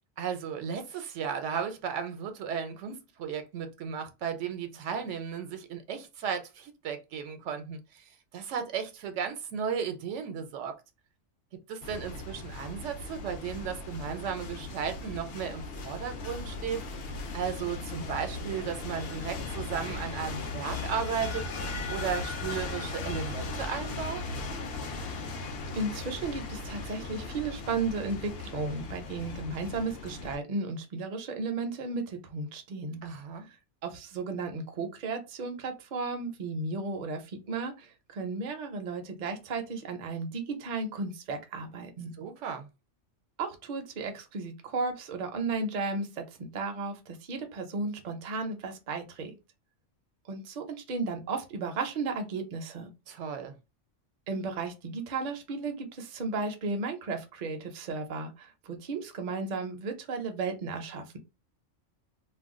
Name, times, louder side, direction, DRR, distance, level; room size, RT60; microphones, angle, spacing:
voice 1, 0.2-8.0 8.3-10.8 11.7-16.8 17.3-21.4 21.9-24.2 33.0-33.4 42.2-42.7 53.1-53.5, right 7 dB, 80° right, 0.9 m, -35 dB
sound 1, 11.8-30.4, left 3 dB, 60° left, 0.7 m, -38 dB
voice 2, 25.7-33.0 33.8-42.1 43.4-49.4 50.3-52.9 54.3-61.2, right 3 dB, 50° right, 0.6 m, -34 dB
2.4 x 2.2 x 3.6 m
omnidirectional pair, 1.2 m